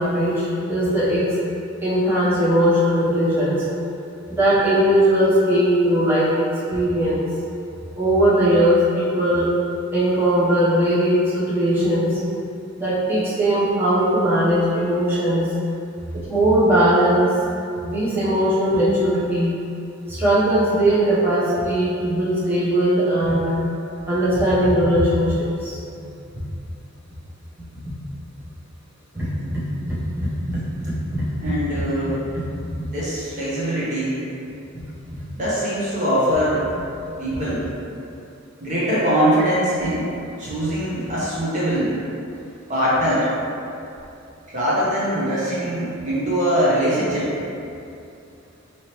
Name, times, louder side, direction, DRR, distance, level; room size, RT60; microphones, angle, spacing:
voice 1, 0.0-1.3 1.8-3.6 4.3-7.2 7.9-9.5 9.9-12.1 12.8-15.5 16.1-17.3 17.8-19.5 20.1-23.6 24.1-25.8 27.8-27.9 29.2-31.5 34.7-34.8 37.3-37.4, right 1 dB, 10° right, -12 dB, 0.9 m, -19 dB
voice 2, 31.4-32.3 32.9-34.2 35.3-36.6 37.2-37.7 38.6-40.1 40.4-42.0 42.7-43.3 44.5-47.3, equal, 35° right, -9 dB, 0.8 m, -22 dB
4.8 x 2.9 x 3.0 m, 2.6 s
head